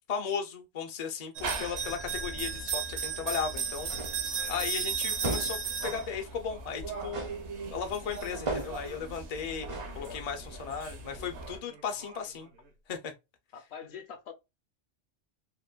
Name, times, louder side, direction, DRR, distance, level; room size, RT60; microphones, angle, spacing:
voice 1, 0.1-3.9 4.5-7.3 7.7-12.5 12.9-13.1, left 6 dB, 50° left, 0.4 m, -36 dB
sound 1, 1.4-11.6, right 5 dB, 70° right, 1.0 m, -36 dB
sound 2, 3.9-4.3 5.2-5.7 7.1-7.5 8.5-8.9 9.7-10.0, right 2 dB, 40° right, 0.4 m, -35 dB
Singing, 4.2-5.4 5.6-9.3 9.6-12.8, right 3 dB, 85° right, 1.2 m, -57 dB
voice 2, 9.9-10.2 13.5-14.3, left 7 dB, 65° left, 0.8 m, -44 dB
2.9 x 2.1 x 2.2 m
omnidirectional pair, 1.3 m